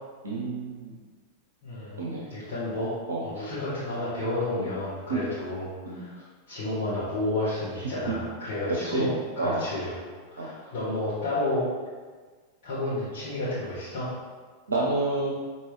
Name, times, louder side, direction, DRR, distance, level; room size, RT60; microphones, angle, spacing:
voice 1, 0.2-1.0 2.0-2.2 3.1-3.2 4.6-4.7 5.1-5.2 5.9-6.0 7.8-8.1 8.8-9.1 9.4-9.6 10.4-10.7 14.7-15.3, right 2 dB, 75° right, -4 dB, 0.6 m, -29 dB
voice 2, 1.6-2.9 3.2-6.2 6.5-9.1 9.3-11.7 12.6-14.1, left 2 dB, 55° left, -12 dB, 1.4 m, -31 dB
4.5 x 3.1 x 3.1 m, 1.4 s
figure-of-eight pair, 90°, 0 cm